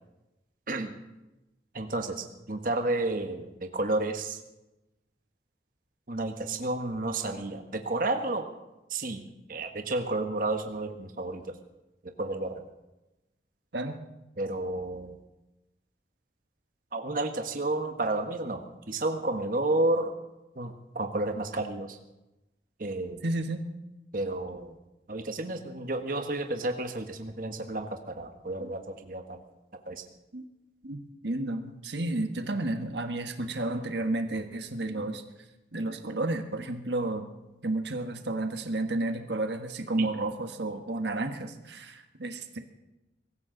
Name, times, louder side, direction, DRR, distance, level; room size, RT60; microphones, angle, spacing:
voice 1, 1.7-4.4 6.1-8.4 8.9-11.5 12.0-12.6 14.4-15.2 16.9-20.1 20.5-22.0 22.8-23.2 24.1-24.7 25.1-29.4 29.9-30.0 40.0-40.1, right 2 dB, 50° right, 5 dB, 1.3 m, -31 dB
voice 2, 23.2-23.6 28.6-28.7 30.3-30.4 30.8-35.2 35.7-37.3 37.6-42.6, right 2 dB, 75° right, 6 dB, 1.5 m, -32 dB
23.5 x 14.5 x 4.0 m, 0.99 s
head